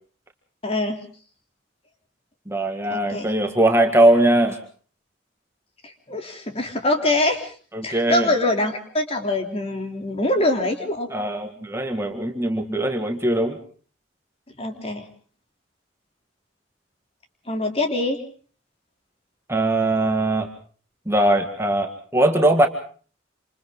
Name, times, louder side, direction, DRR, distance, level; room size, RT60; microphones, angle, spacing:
voice 1, 0.6-1.0 2.9-3.3 5.8-7.5 7.8-11.1 14.6-15.0 17.5-18.2, left 2 dB, 30° left, 4 dB, 3.3 m, -24 dB
voice 2, 2.5-4.6 7.7-8.3 11.1-13.6 19.5-20.5 21.1-22.7, right 1 dB, 15° right, 4 dB, 1.9 m, -20 dB
28.0 x 27.5 x 3.8 m, 0.43 s
head